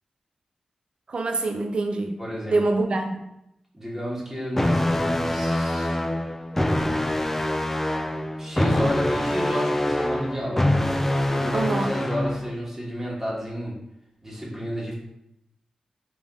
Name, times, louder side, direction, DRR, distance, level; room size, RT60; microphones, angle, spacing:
voice 1, 1.1-2.2 2.5-3.1 11.5-11.9, right 3 dB, 55° right, 4 dB, 0.5 m, -25 dB
voice 2, 2.2-2.6 3.7-6.0 8.4-10.7 11.3-13.7 14.2-15.0, equal, 15° right, -5 dB, 1.1 m, -31 dB
sound 1, 4.5-12.5, left 1 dB, 15° left, 0.3 m, -24 dB
3.4 x 2.5 x 3.7 m, 0.83 s
cardioid pair, 65°, 2 cm